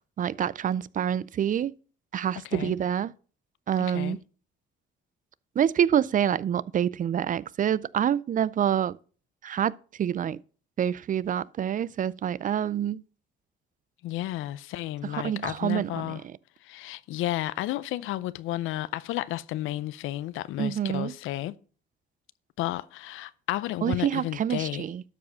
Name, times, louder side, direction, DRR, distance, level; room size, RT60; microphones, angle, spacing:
voice 1, 0.2-1.7 2.1-3.1 3.7-4.2 5.6-9.0 9.4-10.4 10.8-13.0 15.0-16.1 20.6-21.1 23.8-25.0, right 9 dB, 45° right, 0.4 m, -27 dB
voice 2, 3.8-4.2 14.0-16.2 16.6-21.5 22.6-24.8, left 15 dB, 90° left, 0.5 m, -32 dB
12.5 x 4.9 x 6.3 m
cardioid pair, 90°, 20 cm